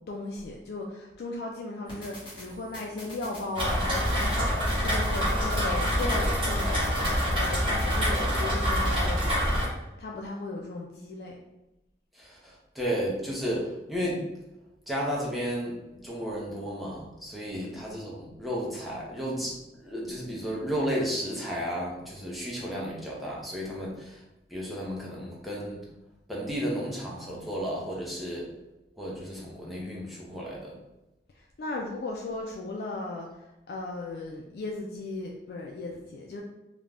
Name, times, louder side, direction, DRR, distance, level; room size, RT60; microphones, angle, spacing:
voice 1, 0.1-4.5 4.8-9.6 10.0-11.4 17.5-17.7 31.4-36.4, left 2 dB, 65° left, -1 dB, 0.3 m, -37 dB
sound 1, 1.9-8.3, left 1 dB, 25° left, 1.1 m, -46 dB
Rain, 3.6-9.7, equal, 30° right, 0.8 m, -26 dB
voice 2, 12.2-14.3 14.9-15.8 16.0-24.2 24.5-25.8 26.3-28.5 29.0-30.7, equal, ahead, -5 dB, 0.5 m, -33 dB
2.5 x 2.1 x 3.3 m, 0.95 s
head